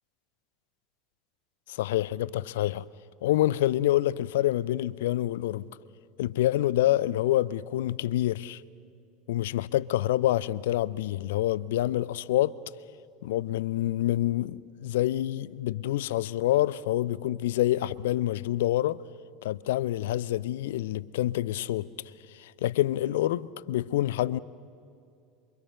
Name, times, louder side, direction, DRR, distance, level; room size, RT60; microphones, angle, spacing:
voice 1, 1.7-2.8 3.2-5.7 6.2-8.6 9.3-12.6 13.2-19.0 19.4-21.9 22.3-24.4, left 14 dB, 60° left, 0.6 m, -27 dB
27.5 x 24.5 x 6.6 m
figure-of-eight pair, 75°, 0 cm